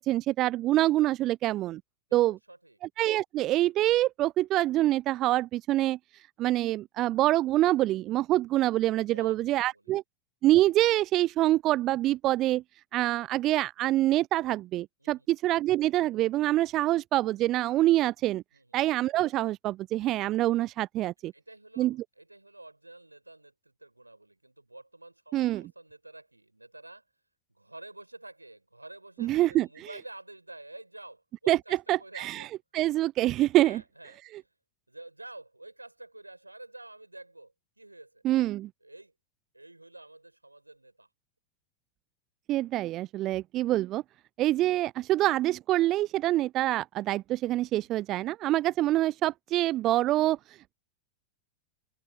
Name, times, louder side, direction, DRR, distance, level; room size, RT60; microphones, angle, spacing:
voice 1, 0.0-1.8 2.1-2.4 3.0-6.0 6.4-10.0 10.4-12.6 12.9-18.4 18.7-21.3 21.8-22.0 25.3-25.7 29.2-29.9 31.5-31.6 31.9-32.5 32.7-33.8 38.2-38.7 42.5-44.0 44.4-50.7, right 15 dB, 35° right, 0.5 m, -26 dB
voice 2, 2.1-2.8 9.0-9.9 15.0-15.3 18.5-18.7 21.3-27.0 27.5-32.5 33.6-34.5 34.9-38.2 38.8-39.1 39.5-41.1, right 2 dB, 85° right, 7.4 m, -49 dB
figure-of-eight pair, 90°, 0 cm